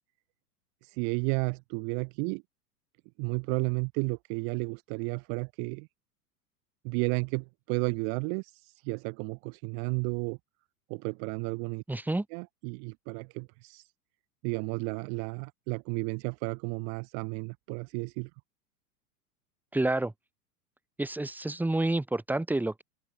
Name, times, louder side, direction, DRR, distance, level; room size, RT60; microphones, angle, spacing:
voice 1, 0.8-2.4 3.2-5.9 6.8-10.4 10.9-11.8 12.3-13.9 14.4-18.3, right 40 dB or more, 30° right, 0.5 m, -32 dB
voice 2, 11.9-12.2 19.7-20.1 21.0-22.8, right 2 dB, 5° right, 1.5 m, -29 dB
open air
figure-of-eight pair, 90°, 46 cm